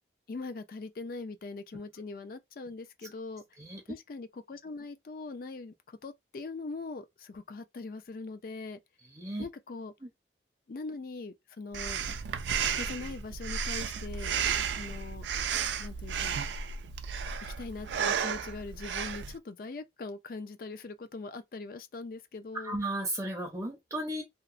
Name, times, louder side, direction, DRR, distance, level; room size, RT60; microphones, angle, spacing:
voice 1, 0.3-3.4 3.9-8.8 9.4-9.9 10.7-12.0 12.8-14.3 14.7-15.3 15.8-16.4 17.6-22.8, left 3 dB, 55° left, 0.4 m, -41 dB
voice 2, 9.1-9.5 10.0-10.1 22.5-24.2, right 1 dB, 20° right, 0.5 m, -34 dB
Breathing, 11.7-19.4, right 7 dB, 80° right, 0.4 m, -33 dB
2.8 x 2.0 x 2.5 m
head